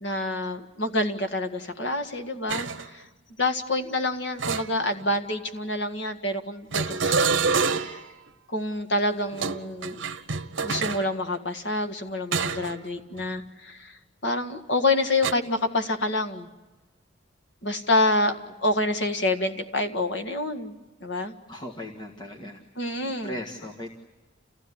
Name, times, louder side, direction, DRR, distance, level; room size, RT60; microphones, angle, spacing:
voice 1, 0.0-3.1 3.4-7.5 7.8-8.1 8.5-10.0 10.6-13.9 14.2-16.5 17.6-18.3 18.6-20.7 21.0-21.3 22.8-23.3, left 2 dB, 60° left, 7 dB, 1.9 m, -27 dB
sound 1, 2.5-2.9 4.4-5.2 6.7-8.1 9.3-11.1 12.3-12.8 13.2-13.4 15.2-15.3, right 5 dB, 70° right, 1.0 m, -27 dB
voice 2, 21.5-22.6 23.0-23.9, left 1 dB, 20° left, -1 dB, 1.8 m, -38 dB
29.5 x 16.0 x 9.8 m, 1.2 s
head